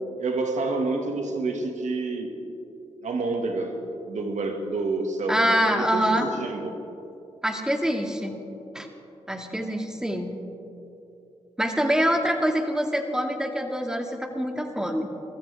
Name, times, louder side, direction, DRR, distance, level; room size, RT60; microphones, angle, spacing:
voice 1, 0.2-2.3 3.0-3.8 4.1-6.7, right 3 dB, 65° right, 4 dB, 2.0 m, -28 dB
voice 2, 5.3-6.3 7.4-8.4 8.7-8.9 9.3-10.4 11.6-15.1, equal, 5° right, 3 dB, 2.1 m, -25 dB
22.0 x 14.0 x 3.5 m, 2.8 s
supercardioid pair, 45°, 13 cm